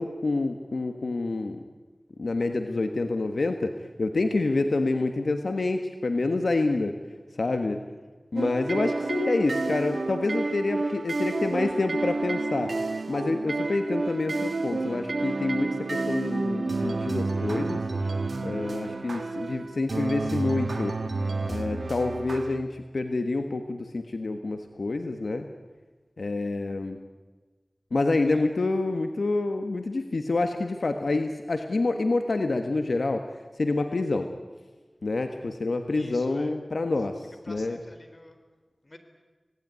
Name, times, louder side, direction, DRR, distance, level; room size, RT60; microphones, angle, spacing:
voice 1, 0.0-1.6 2.2-6.9 7.4-7.8 8.3-12.7 13.1-17.8 18.4-20.9 21.5-25.5 26.2-27.0 27.9-33.3 33.6-34.3 35.0-37.8, left 3 dB, 85° left, 6 dB, 1.5 m, -27 dB
sound 1, 8.4-22.6, right 3 dB, 80° right, 2.0 m, -30 dB
voice 2, 35.9-36.5 37.5-38.4 38.8-39.0, left 1 dB, 45° left, 7 dB, 4.0 m, -47 dB
26.0 x 18.5 x 9.7 m, 1.3 s
wide cardioid pair, 50°, 0 cm